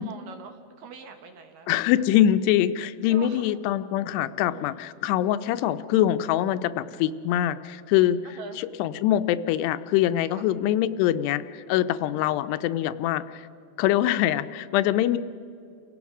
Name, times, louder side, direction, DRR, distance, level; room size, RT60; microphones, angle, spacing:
voice 1, 0.0-1.7 2.0-2.1 3.1-3.5 4.4-4.8 8.2-8.6 10.3-10.5 12.0-12.3, right 5 dB, 70° right, 6 dB, 2.3 m, -44 dB
voice 2, 1.7-8.2 8.6-13.5 13.8-15.2, left 12 dB, 85° left, 12 dB, 2.7 m, -24 dB
29.5 x 16.5 x 6.1 m, 2.5 s
omnidirectional pair, 4.8 m